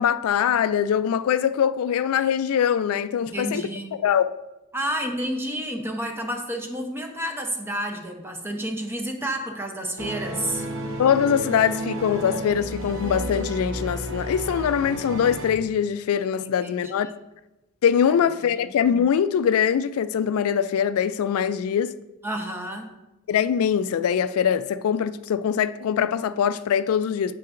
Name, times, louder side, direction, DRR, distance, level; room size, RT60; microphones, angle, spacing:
voice 1, 0.0-3.6 4.0-4.4 11.0-17.1 17.8-21.9 23.3-27.3, left 8 dB, 85° left, 0.3 m, -22 dB
voice 2, 3.2-3.9 4.7-10.6 16.4-16.8 18.5-18.7 22.2-22.9, right 1 dB, 10° right, 0.8 m, -30 dB
sound 1, 10.0-15.5, right 1 dB, 65° right, 1.0 m, -32 dB
8.4 x 7.6 x 2.5 m
head